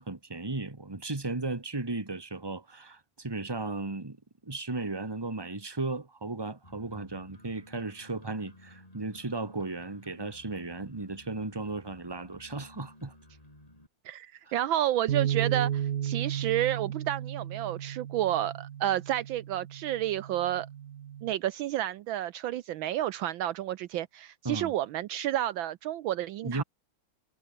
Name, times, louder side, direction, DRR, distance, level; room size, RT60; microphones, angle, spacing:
voice 1, 0.0-4.2 4.4-13.1 14.5-14.6 24.4-24.7 26.4-26.6, right 3 dB, 10° right, 1.8 m, -35 dB
sound 1, 6.6-13.9, left 1 dB, 15° left, 7.5 m, -55 dB
voice 2, 14.0-20.7 21.2-26.6, right 12 dB, 75° right, 1.4 m, -30 dB
sound 2, 15.1-21.3, right 10 dB, 55° right, 1.1 m, -34 dB
omnidirectional pair, 2.3 m